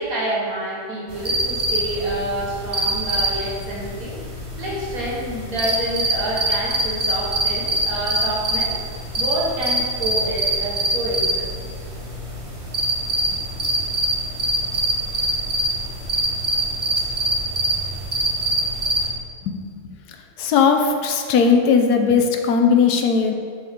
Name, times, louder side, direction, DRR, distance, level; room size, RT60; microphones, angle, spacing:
voice 1, 0.0-4.2 4.6-11.5, right 1 dB, 65° right, -4 dB, 1.7 m, -28 dB
sound 1, 1.1-19.1, right 1 dB, 25° right, 0.8 m, -24 dB
voice 2, 20.4-23.3, left 5 dB, 85° left, 5 dB, 1.2 m, -17 dB
6.9 x 6.4 x 3.6 m, 2.2 s
omnidirectional pair, 1.6 m